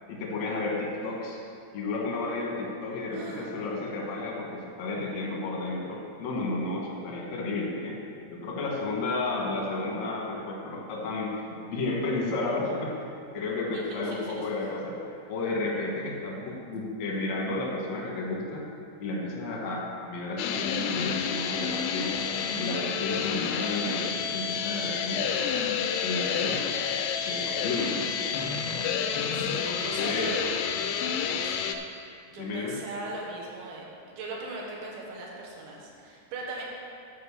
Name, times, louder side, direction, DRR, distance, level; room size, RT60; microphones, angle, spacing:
voice 1, 0.1-1.4 1.7-8.0 8.3-18.6 19.0-22.2 22.6-25.3 26.0-26.6 27.3-27.9 29.4-30.3 31.0-31.4 32.4-32.8, left 2 dB, 70° left, -2 dB, 1.6 m, -32 dB
voice 2, 3.1-3.6 13.7-14.3 27.8-28.0 28.8-30.5 32.3-36.6, right 2 dB, 80° right, -3 dB, 3.7 m, -40 dB
sound 1, 20.4-31.7, left 7 dB, 85° left, 2.3 m, -29 dB
9.5 x 5.6 x 7.0 m, 2.5 s
omnidirectional pair, 5.2 m